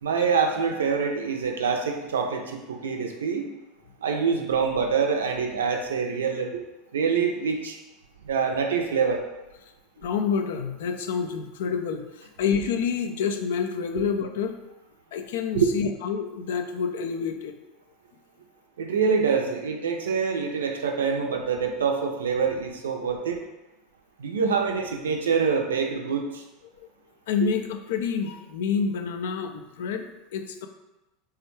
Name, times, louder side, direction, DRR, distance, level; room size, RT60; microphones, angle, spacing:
voice 1, 0.0-3.5 4.0-6.6 6.9-7.8 8.2-9.2 15.5-15.7 18.8-23.4 24.2-26.4, right 6 dB, 85° right, 3 dB, 0.4 m, -25 dB
voice 2, 10.0-12.0 12.4-14.5 15.1-17.5 27.3-30.7, left 6 dB, 75° left, 6 dB, 0.3 m, -28 dB
3.3 x 2.2 x 3.0 m, 1.0 s
hypercardioid pair, 85°, 0 cm